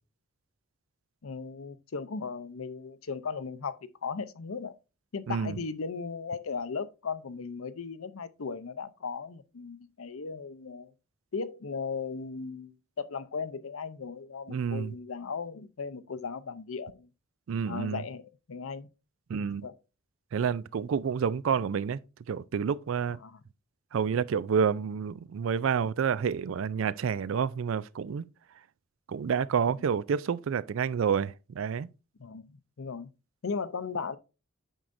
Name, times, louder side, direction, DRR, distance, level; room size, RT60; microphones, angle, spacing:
voice 1, 1.2-4.8 5.1-10.9 11.3-17.1 17.7-18.9 19.6-19.7 23.2-23.4 32.2-33.1 33.4-34.2, left 5 dB, 90° left, 0.6 m, -37 dB
voice 2, 5.3-5.6 14.5-14.9 17.5-18.0 19.3-19.7 20.3-22.0 22.3-23.2 23.9-28.2 29.1-31.9, right 7 dB, 70° right, 0.4 m, -29 dB
8.9 x 6.3 x 2.6 m
head